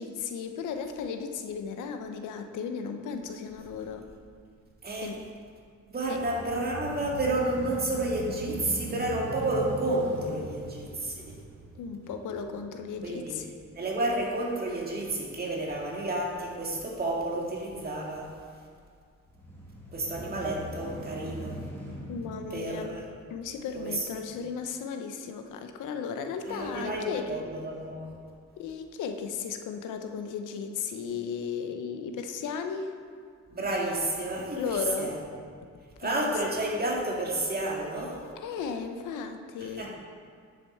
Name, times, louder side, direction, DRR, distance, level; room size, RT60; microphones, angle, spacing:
voice 1, 0.0-4.0 5.0-5.2 6.1-6.2 11.8-13.4 22.1-23.0 23.3-27.4 28.6-32.9 34.5-35.1 36.0-36.3 38.4-39.9, left 6 dB, 85° left, 6 dB, 0.8 m, -35 dB
voice 2, 4.8-5.1 5.9-11.4 13.0-13.4 13.7-18.3 19.9-21.6 22.5-23.0 23.7-24.1 26.5-28.1 33.5-35.2 36.0-38.2 39.6-39.9, right 2 dB, 30° right, -2 dB, 2.0 m, -31 dB
sound 1, 6.0-14.2 14.6-14.7 19.3-23.8, equal, 10° left, 2.2 m, -41 dB
9.7 x 6.7 x 4.4 m, 2.2 s
cardioid pair, 100°, 30 cm